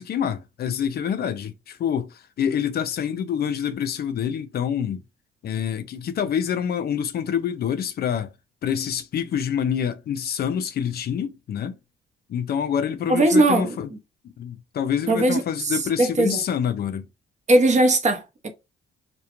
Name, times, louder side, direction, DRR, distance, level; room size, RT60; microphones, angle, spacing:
voice 1, 0.0-5.0 5.4-8.3 8.6-11.7 12.3-13.9 14.4-17.1, left 8 dB, 55° left, 0.4 m, -26 dB
voice 2, 13.1-13.8 15.1-16.4 17.5-18.5, right 2 dB, 35° right, 0.6 m, -19 dB
2.3 x 2.2 x 2.8 m
cardioid pair, 90°, 20 cm